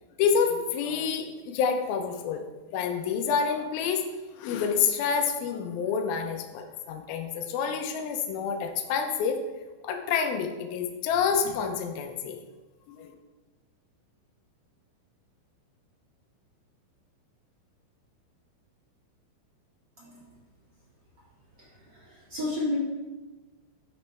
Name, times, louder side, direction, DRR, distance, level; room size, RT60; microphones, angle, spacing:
voice 1, 0.2-2.4 2.7-4.1 4.4-9.4 9.8-12.4 12.9-13.1, left 6 dB, 85° left, 4 dB, 2.2 m, -28 dB
voice 2, 20.0-20.3 21.5-22.8, left 2 dB, 40° right, -7 dB, 1.5 m, -33 dB
13.5 x 5.2 x 3.4 m, 1.2 s
omnidirectional pair, 5.2 m